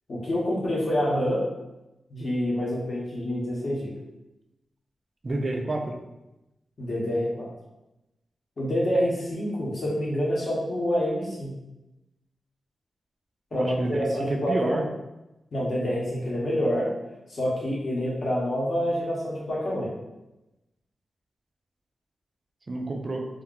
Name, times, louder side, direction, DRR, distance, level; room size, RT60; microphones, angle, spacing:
voice 1, 0.1-1.4 2.1-3.9 6.8-7.5 8.6-11.5 13.5-14.8 15.5-16.9 17.3-19.9, equal, 45° left, -5 dB, 0.8 m, -27 dB
voice 2, 5.2-5.9 13.5-14.8 22.7-23.3, right 2 dB, 35° right, 3 dB, 0.3 m, -29 dB
2.4 x 2.2 x 3.6 m, 0.97 s
wide cardioid pair, 165°, 0 cm